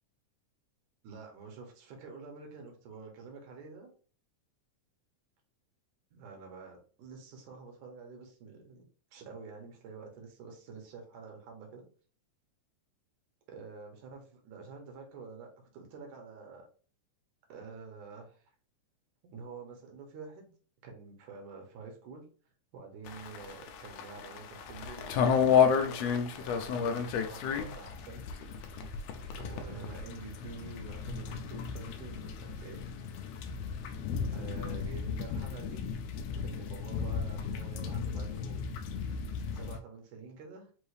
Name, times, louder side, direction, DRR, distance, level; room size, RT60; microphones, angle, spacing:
voice 1, 1.0-3.9 6.1-8.8 9.1-11.9 13.5-16.7 17.5-18.5 19.3-20.5 20.8-22.2 22.7-25.1 25.5-28.2 28.9-32.8 33.4-35.8 36.4-40.7, right 5 dB, 80° right, 2 dB, 2.6 m, -48 dB
sound 1, 23.1-39.8, left 7 dB, 80° left, 1.5 m, -33 dB
5.4 x 2.7 x 3.3 m, 0.41 s
omnidirectional pair, 3.5 m